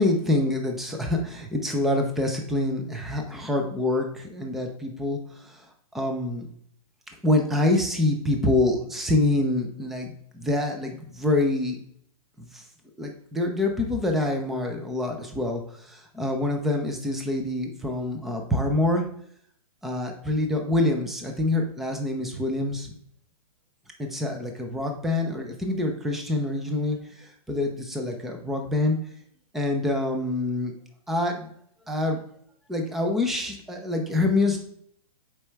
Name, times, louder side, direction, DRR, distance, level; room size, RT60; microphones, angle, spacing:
voice 1, 0.0-5.7 5.9-6.5 7.2-11.8 12.4-12.6 13.0-19.1 19.8-22.9 24.0-29.0 29.5-30.7 31.1-31.5 31.9-32.2 32.7-34.6, left 2 dB, ahead, 3 dB, 0.3 m, -26 dB
6.9 x 4.5 x 3.3 m, 0.64 s
hypercardioid pair, 160°, 19 cm